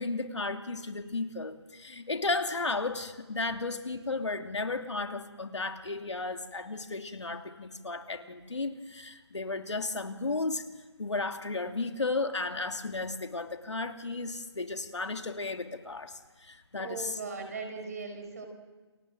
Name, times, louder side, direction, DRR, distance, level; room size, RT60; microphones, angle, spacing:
voice 1, 0.0-10.7 11.0-17.1, left 3 dB, 85° left, 6 dB, 2.7 m, -34 dB
voice 2, 16.8-18.5, right 4 dB, 35° right, 5 dB, 5.2 m, -39 dB
29.5 x 22.5 x 7.7 m, 1.3 s
figure-of-eight pair, 170°, 15 cm